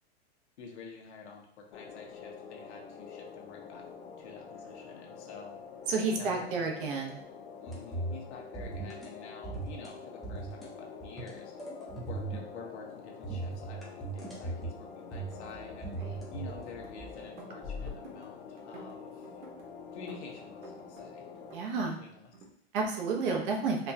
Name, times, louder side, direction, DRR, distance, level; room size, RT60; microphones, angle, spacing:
voice 1, 0.6-3.8 4.2-5.6 6.1-6.6 7.6-11.5 12.1-16.0 16.3-19.2 19.9-21.3 21.6-22.3, left 5 dB, 75° left, 0 dB, 1.2 m, -49 dB
sound 1, 1.7-21.6, left 6 dB, 60° left, 0.9 m, -47 dB
voice 2, 5.9-7.2 16.0-16.1 21.5-22.0 22.7-23.8, right 4 dB, 50° right, 0 dB, 0.9 m, -30 dB
sound 2, 7.7-8.3 8.5-9.1 9.4-9.9 10.2-10.7 11.0-12.5 13.2-14.8 15.1-17.2 17.6-17.9, right 3 dB, ahead, 0.6 m, -39 dB
sound 3, 15.0-15.6 15.9-16.9 17.2-18.3 18.6-19.7 20.1-21.1 21.3-22.5, right 3 dB, 90° right, 1.2 m, -51 dB
4.3 x 2.3 x 2.7 m, 0.69 s
supercardioid pair, 150°, 34 cm